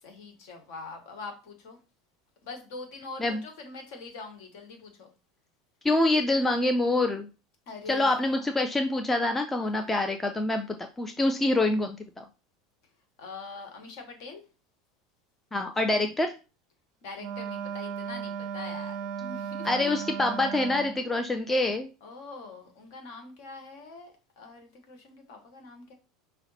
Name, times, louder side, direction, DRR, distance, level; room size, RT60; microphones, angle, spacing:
voice 1, 0.0-1.8 2.4-5.1 7.7-8.4 9.6-9.9 13.2-14.4 17.0-19.9 22.0-25.9, left 4 dB, 55° left, 5 dB, 1.3 m, -43 dB
voice 2, 5.8-7.3 7.9-12.2 15.5-16.3 19.6-21.9, left 2 dB, 10° left, 5 dB, 0.5 m, -26 dB
Wind instrument woodwind instrument, 17.2-21.1, right 7 dB, 50° right, 0.4 m, -36 dB
5.6 x 2.1 x 4.1 m, 0.31 s
figure-of-eight pair, 75°, 2 cm